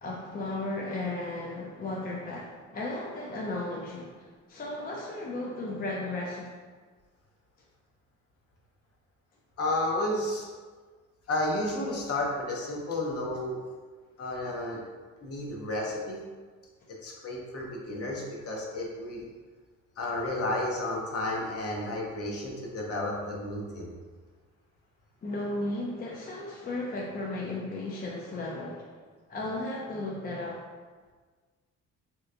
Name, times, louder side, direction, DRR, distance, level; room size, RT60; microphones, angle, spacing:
voice 1, 0.0-6.5 25.2-29.0 29.3-30.6, left 2 dB, 30° left, -3 dB, 0.4 m, -35 dB
voice 2, 9.6-10.5 11.3-13.6 14.2-14.8 15.2-16.2 17.0-19.3 20.0-23.9, left 1 dB, 50° left, -2 dB, 0.8 m, -32 dB
3.2 x 2.9 x 2.4 m, 1.4 s
cardioid pair, 90°, 30 cm